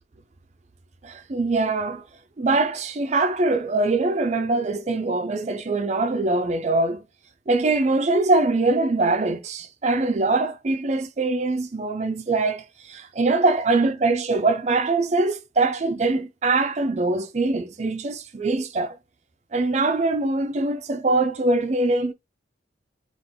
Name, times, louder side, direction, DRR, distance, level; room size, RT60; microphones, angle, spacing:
voice 1, 1.0-2.0 2.4-7.0 7.5-19.0 19.5-22.1, right 3 dB, 40° right, 0.5 m, -23 dB
3.8 x 2.5 x 3.5 m
head